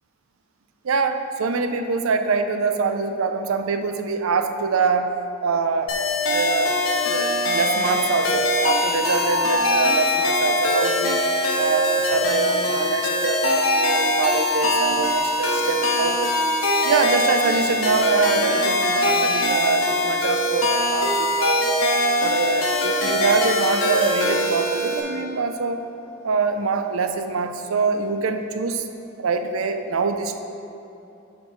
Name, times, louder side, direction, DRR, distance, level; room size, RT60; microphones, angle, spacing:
voice 1, 0.8-5.2 5.4-5.9 6.3-6.8 7.0-11.3 11.6-16.3 16.8-21.8 22.2-25.8 26.2-28.9 29.2-30.4, right 4 dB, 90° right, 7 dB, 0.5 m, -24 dB
sound 1, 5.9-25.0, left 1 dB, 85° left, 1.1 m, -22 dB
6.8 x 4.7 x 6.2 m, 2.8 s
head